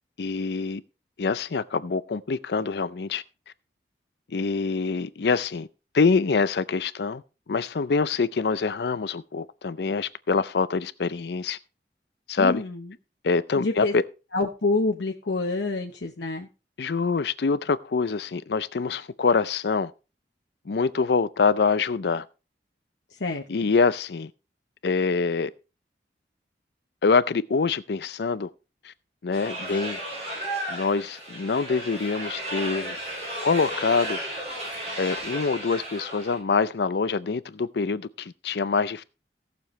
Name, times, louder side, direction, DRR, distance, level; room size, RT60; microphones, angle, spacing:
voice 1, 0.2-0.8 1.2-3.2 4.3-5.7 5.9-7.2 7.5-11.6 12.3-12.6 13.2-14.0 16.8-19.9 20.7-22.3 23.5-24.3 24.8-25.5 27.0-28.5 28.8-28.9 29.2-30.0 30.7-33.0 33.4-34.2 35.0-39.0, left 4 dB, 70° left, 0.5 m, -25 dB
voice 2, 12.4-12.9 13.6-13.9 14.3-16.5 23.1-23.4, left 3 dB, 90° left, 1.0 m, -27 dB
sound 1, 29.3-36.4, right 1 dB, 35° right, 6.3 m, -34 dB
17.0 x 7.0 x 3.2 m
head